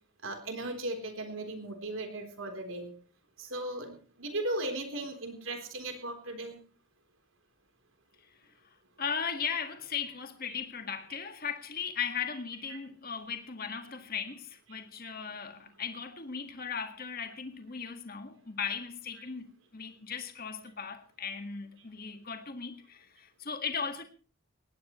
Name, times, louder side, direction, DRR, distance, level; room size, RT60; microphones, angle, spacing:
voice 1, 0.2-2.9 3.4-6.6 10.5-10.6 12.3-12.4 12.7-12.8 15.5-15.7, right 1 dB, 75° right, 3.9 m, -37 dB
voice 2, 9.0-19.5 19.7-24.0, left 6 dB, 45° left, 1.9 m, -37 dB
19.5 x 17.0 x 3.2 m
head